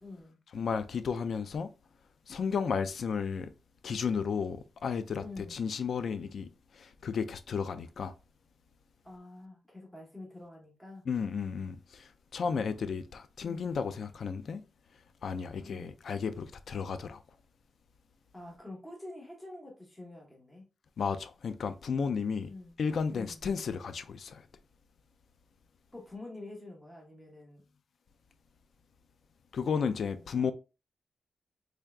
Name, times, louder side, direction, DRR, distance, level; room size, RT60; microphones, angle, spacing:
voice 1, 0.0-0.4 5.2-5.6 9.0-11.0 13.4-13.7 15.6-15.9 18.3-20.6 22.5-22.8 23.1-23.5 25.9-27.6 29.6-30.5, left 2 dB, 10° left, 1.2 m, -47 dB
voice 2, 0.5-1.7 2.3-3.5 3.8-5.2 5.5-6.5 6.7-8.1 11.1-14.6 15.2-17.2 21.0-22.5 22.8-24.4 29.5-30.5, left 6 dB, 65° left, 0.3 m, -33 dB
3.6 x 3.4 x 2.3 m
wide cardioid pair, 120°, 0 cm